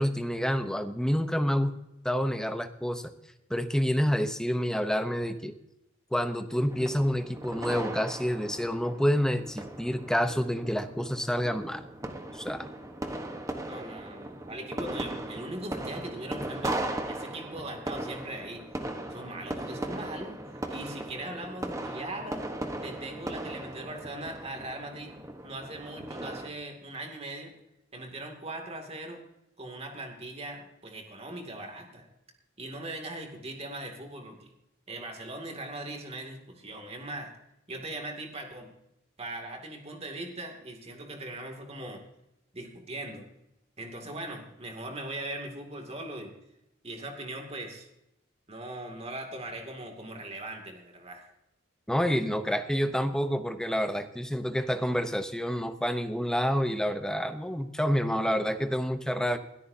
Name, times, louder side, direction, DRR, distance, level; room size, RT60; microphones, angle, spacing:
voice 1, 0.0-1.8 2.0-3.1 3.5-5.5 6.1-11.8 12.3-12.7 51.9-59.4, equal, 5° left, 8 dB, 0.8 m, -28 dB
sound 1, 6.7-26.5, right 1 dB, 15° right, 1.1 m, -38 dB
voice 2, 13.7-18.7 19.1-20.4 20.7-22.4 22.8-25.1 25.4-27.5 27.9-29.2 29.6-32.1 32.6-34.5 34.9-37.3 37.7-38.7 39.2-42.0 42.5-43.3 43.8-46.3 46.8-47.9 48.5-51.3, right 1 dB, 30° right, 3 dB, 2.4 m, -40 dB
21.0 x 13.0 x 2.8 m, 0.86 s
head